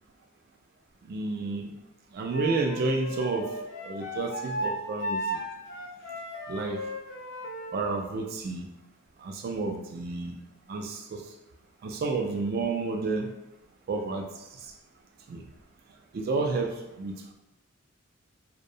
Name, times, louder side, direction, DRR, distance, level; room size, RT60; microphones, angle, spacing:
voice 1, 1.1-1.7 2.1-3.5 3.8-5.4 6.5-6.8 7.7-8.7 9.2-10.4 10.7-11.2 11.8-13.3 13.9-14.7 15.3-15.5 16.1-17.3, right 3 dB, 45° right, 3 dB, 0.3 m, -30 dB
Wind instrument woodwind instrument, 2.3-7.8, equal, 60° left, 0.4 m, -35 dB
2.5 x 2.1 x 2.7 m, 0.93 s
head